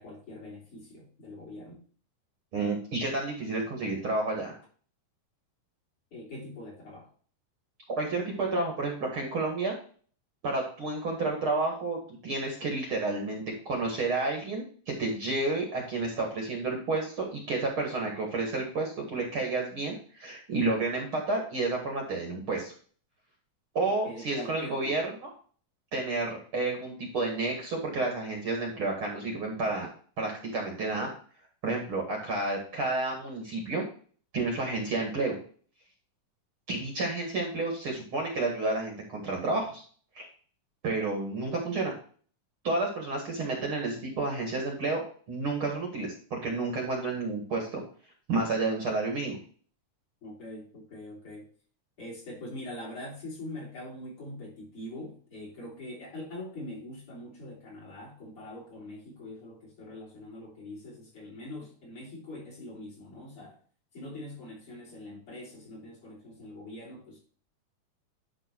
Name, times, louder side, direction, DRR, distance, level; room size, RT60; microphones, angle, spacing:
voice 1, 0.0-1.8 6.1-7.1 24.0-25.0 50.2-51.5 52.0-63.6 63.9-67.2, left 1 dB, 45° left, 4.4 m, -43 dB
voice 2, 2.5-4.5 7.9-9.7 10.4-22.7 23.7-25.3 25.9-29.9 30.2-31.1 31.6-33.8 34.3-35.4 36.7-39.8 40.2-40.3 40.8-41.9 42.6-45.0 45.3-47.8 48.3-49.4, right 3 dB, 50° right, 2.3 m, -30 dB
11.0 x 3.8 x 4.5 m
omnidirectional pair, 3.6 m